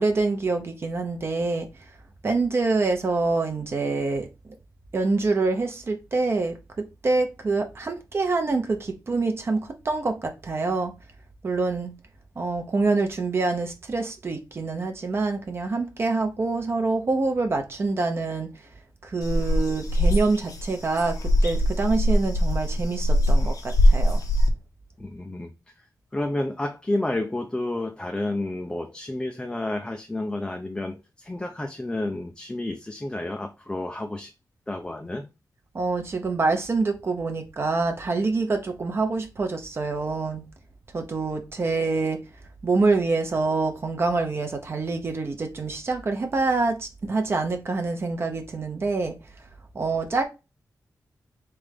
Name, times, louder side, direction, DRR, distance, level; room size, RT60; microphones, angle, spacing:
voice 1, 0.0-1.7 2.2-4.6 4.9-10.9 11.4-11.9 12.4-18.5 19.0-24.2 35.7-40.4 40.9-42.2 42.6-49.1 49.7-50.2, right 3 dB, 40° right, 0.7 m, -26 dB
sound 1, 19.2-24.5, equal, 60° left, 0.9 m, -21 dB
voice 2, 25.0-25.5 26.1-34.3 34.7-35.3, left 1 dB, 15° left, 0.4 m, -30 dB
3.8 x 3.3 x 3.5 m
wide cardioid pair, 150°, 7 cm